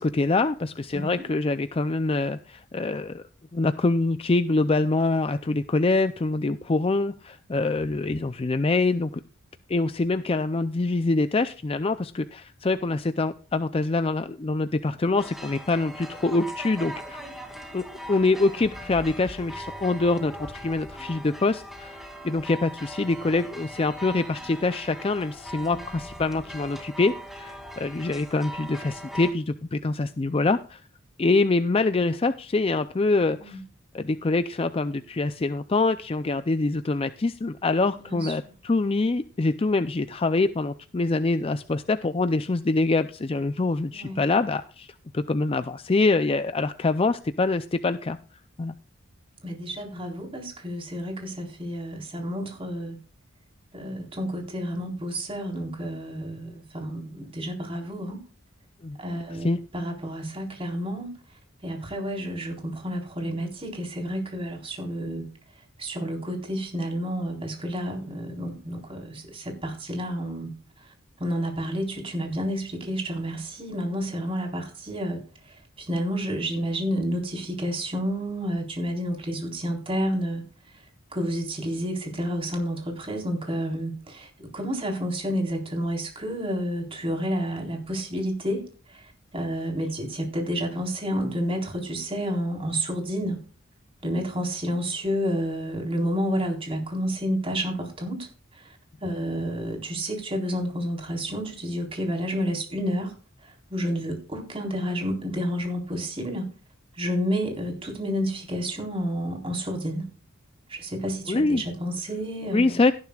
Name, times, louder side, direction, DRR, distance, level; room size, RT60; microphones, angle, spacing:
voice 1, 0.0-3.2 3.5-9.2 9.7-17.2 17.7-30.8 31.2-33.6 33.9-44.9 45.1-48.2 48.6-48.7 58.8-59.0 59.3-59.6 111.3-111.6 112.5-112.9, left 3 dB, 25° left, 0.4 m, -25 dB
voice 2, 0.9-1.2 33.2-33.6 38.1-38.3 43.9-44.2 49.4-53.0 53.7-58.2 58.9-61.1 61.6-65.3 65.8-70.5 70.8-80.8 81.1-88.6 88.9-93.4 94.0-98.3 98.5-103.2 103.4-106.5 106.9-110.1 110.7-112.8, equal, 25° right, 4.1 m, -30 dB
sound 1, 15.2-29.3, equal, ahead, 2.3 m, -40 dB
17.5 x 10.5 x 2.4 m
head